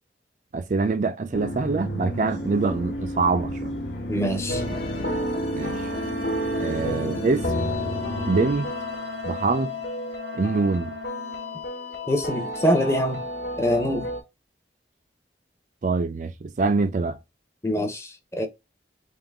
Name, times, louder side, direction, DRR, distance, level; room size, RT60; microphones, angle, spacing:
voice 1, 0.5-3.8 5.5-5.9 6.6-7.5 8.3-8.7 9.2-9.8 10.3-10.9 15.8-17.2, right 4 dB, 45° right, 0.4 m, -24 dB
sound 1, 1.3-8.5, equal, 85° left, 1.1 m, -32 dB
voice 2, 4.1-4.8 12.1-13.2 13.6-14.1 17.6-18.5, equal, 15° left, 0.6 m, -24 dB
sound 2, 4.5-14.2, left 1 dB, 65° left, 1.2 m, -32 dB
Wind instrument woodwind instrument, 5.6-11.7, right 1 dB, 80° right, 0.7 m, -38 dB
3.6 x 3.0 x 3.5 m
head